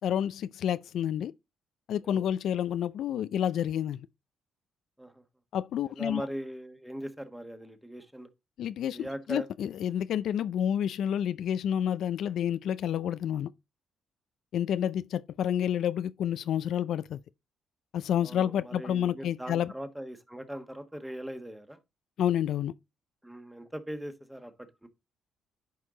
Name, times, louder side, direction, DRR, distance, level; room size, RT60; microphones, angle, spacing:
voice 1, 0.0-1.3 1.9-4.1 5.5-6.3 8.6-13.5 14.5-17.2 17.9-19.7 22.2-22.7, left 10 dB, 75° left, 0.4 m, -29 dB
voice 2, 5.9-8.3 8.9-9.5 18.2-21.8 23.2-24.9, right 1 dB, 5° right, 1.4 m, -40 dB
10.5 x 4.6 x 3.7 m
cardioid pair, 90°, 0 cm